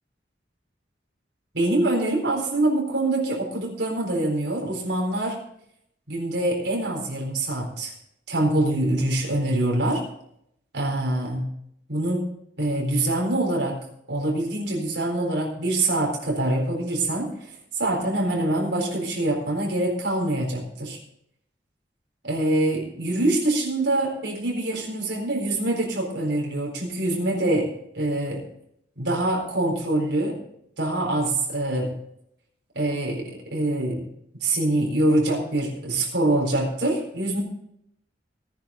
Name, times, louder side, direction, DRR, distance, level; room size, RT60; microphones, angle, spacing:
voice 1, 1.5-5.4 6.1-7.9 8.3-10.0 10.7-11.4 11.9-12.3 12.6-13.8 14.1-17.3 17.8-21.0 22.2-28.5 29.0-30.4 30.8-31.9 32.7-34.1 34.4-37.4, right 1 dB, 75° right, 0 dB, 4.2 m, -24 dB
17.0 x 10.5 x 3.8 m, 0.73 s
head